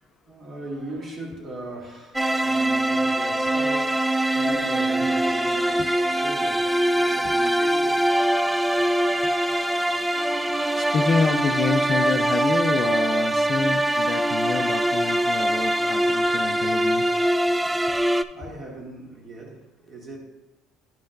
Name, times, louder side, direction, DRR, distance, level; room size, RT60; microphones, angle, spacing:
voice 1, 0.0-5.8 6.2-8.1 10.4-10.5 18.3-20.2, right 2 dB, 45° right, 2.1 m, -38 dB
sound 1, 2.1-18.2, right 1 dB, 10° right, 0.3 m, -23 dB
voice 2, 10.8-17.1, left 5 dB, 40° left, 0.5 m, -27 dB
10.5 x 5.6 x 2.6 m
supercardioid pair, 90°, 0 cm